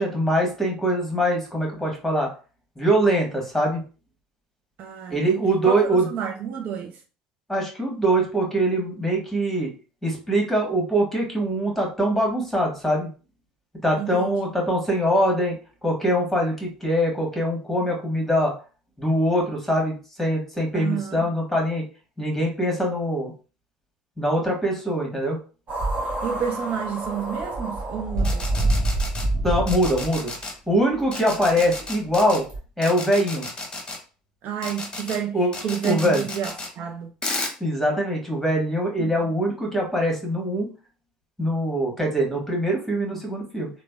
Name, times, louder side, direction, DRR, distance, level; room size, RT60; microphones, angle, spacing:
voice 1, 0.0-2.3 2.8-3.8 5.1-6.1 7.5-9.7 10.0-13.1 13.8-18.5 19.0-21.8 22.2-23.3 24.2-25.4 29.4-30.3 30.7-32.4 32.8-33.5 35.3-35.5 35.8-36.2 37.6-40.7 41.4-43.7, right 1 dB, 5° left, 1.3 m, -23 dB
voice 2, 4.8-7.0 14.0-14.5 20.7-21.3 26.2-28.5 31.1-31.3 34.4-37.1 39.0-39.3, right 8 dB, 55° right, 0.4 m, -30 dB
sound 1, 25.7-30.2 31.0-31.1 32.5-32.6, right 2 dB, 35° right, 1.0 m, -26 dB
sound 2, 28.2-29.2 29.7-30.5 31.1-32.4 32.8-34.0 34.6-35.2 35.5-36.7 37.2-37.5, left 2 dB, 25° left, 0.9 m, -32 dB
3.2 x 2.0 x 2.3 m
hypercardioid pair, 70°, 4 cm